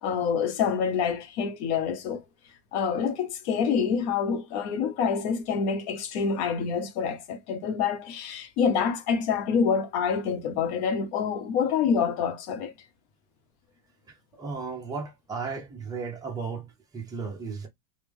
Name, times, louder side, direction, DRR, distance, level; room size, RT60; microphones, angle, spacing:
voice 1, 0.0-2.2 2.7-12.7, left 6 dB, 50° left, 0.9 m, -27 dB
voice 2, 14.1-17.7, right 5 dB, 10° right, 0.8 m, -35 dB
3.3 x 2.2 x 3.4 m
supercardioid pair, 150°, 42 cm